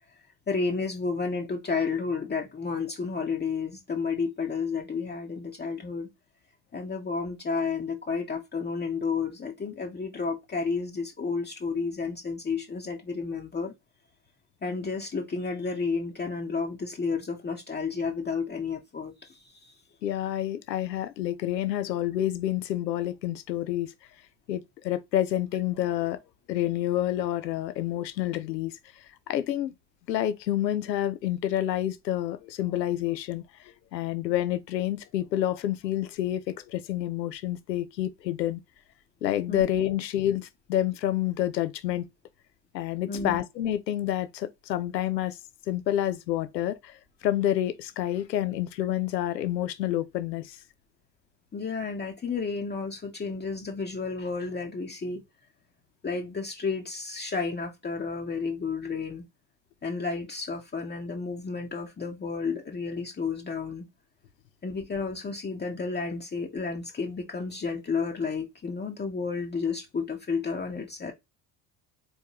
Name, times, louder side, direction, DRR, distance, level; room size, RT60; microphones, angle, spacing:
voice 1, 0.5-6.1 6.7-13.7 14.6-19.7 39.5-39.6 43.1-43.4 51.5-55.2 56.0-59.2 59.8-63.9 64.6-71.1, left 4 dB, 20° left, 1.0 m, -31 dB
voice 2, 20.0-23.9 24.5-26.2 26.5-28.7 29.3-29.7 30.1-33.4 33.9-38.6 39.2-42.1 42.7-45.4 45.7-46.9 47.2-50.6, left 12 dB, 80° left, 0.7 m, -28 dB
4.3 x 3.2 x 2.9 m
figure-of-eight pair, 55°, 50 cm